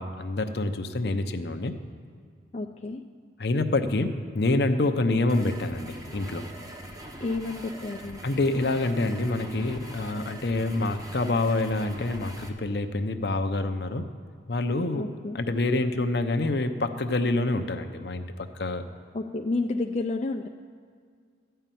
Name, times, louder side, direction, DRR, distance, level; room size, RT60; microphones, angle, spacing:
voice 1, 0.0-1.7 3.4-6.4 8.2-14.1 14.5-15.1 15.3-18.8, left 2 dB, 65° left, 7 dB, 0.7 m, -27 dB
voice 2, 2.5-3.0 7.2-8.2 15.0-15.4 19.1-20.5, left 3 dB, 35° left, 3 dB, 0.4 m, -30 dB
sound 1, 5.3-12.5, right 1 dB, 20° right, 0.9 m, -42 dB
13.0 x 5.6 x 9.1 m, 2.1 s
head